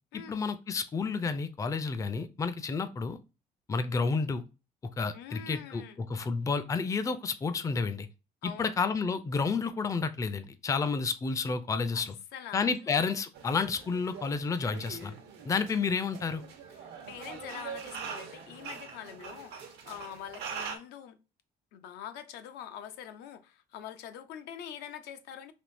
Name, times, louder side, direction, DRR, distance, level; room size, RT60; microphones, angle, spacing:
voice 1, 0.1-3.2 3.7-4.4 5.0-8.1 8.4-12.1 12.5-15.1 15.4-16.4, left 4 dB, 20° left, 0.4 m, -30 dB
voice 2, 5.1-6.0 8.4-8.7 11.9-12.0 12.3-12.9 16.8-21.2 21.7-25.5, left 9 dB, 80° left, 0.5 m, -44 dB
sound 1, 13.3-20.8, right 6 dB, 85° right, 0.8 m, -43 dB
3.4 x 2.7 x 2.5 m
cardioid pair, 110°, 17 cm